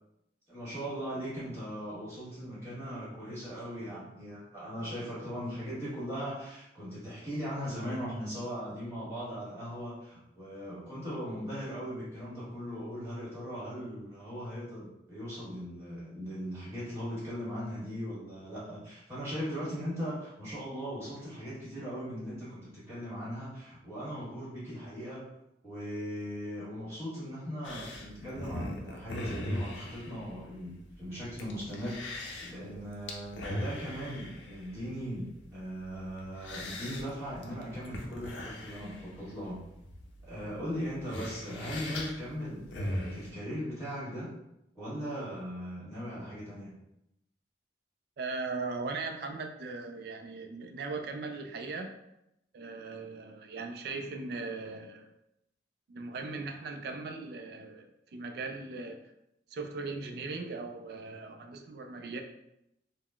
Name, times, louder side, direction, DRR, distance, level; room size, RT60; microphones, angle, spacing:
voice 1, 0.5-25.3 25.6-39.6 40.2-44.3 44.7-46.7, equal, 15° right, -10 dB, 1.4 m, -39 dB
sound 1, 27.6-43.3, left 1 dB, 85° left, 0.5 m, -41 dB
voice 2, 48.2-51.9 52.5-55.1 55.9-59.0 59.5-62.2, right 3 dB, 60° right, 5 dB, 0.3 m, -39 dB
3.6 x 2.0 x 2.3 m, 0.83 s
head